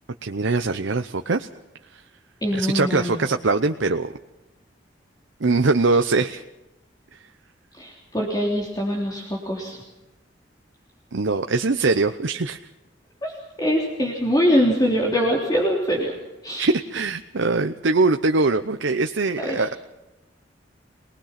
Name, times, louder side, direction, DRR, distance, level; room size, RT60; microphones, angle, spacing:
voice 1, 0.2-1.5 1.9-2.0 2.5-4.1 5.4-6.4 7.1-7.2 11.1-12.6 16.6-19.8, right 3 dB, 85° right, 7 dB, 0.8 m, -22 dB
voice 2, 2.4-3.2 7.8-9.8 13.2-13.3 13.6-16.1 16.4-16.7 19.4-19.6, equal, 20° left, -2 dB, 3.4 m, -23 dB
25.0 x 19.5 x 5.9 m, 1.0 s
head